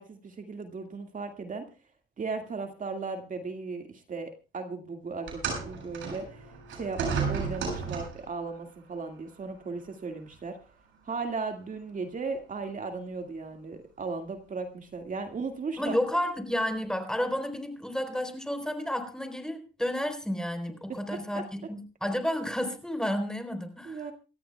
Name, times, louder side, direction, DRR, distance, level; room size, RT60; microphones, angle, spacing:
voice 1, 0.0-1.7 2.2-10.6 11.0-16.0 20.9-21.4 23.9-24.1, right 4 dB, 40° right, 4 dB, 2.0 m, -36 dB
sound 1, 5.3-8.3 9.3-9.5 10.3-10.4, right 5 dB, 75° right, 7.9 m, -33 dB
voice 2, 15.8-24.0, left 1 dB, 5° left, 7 dB, 3.9 m, -31 dB
27.5 x 14.0 x 2.3 m, 0.32 s
cardioid pair, 90°, 20 cm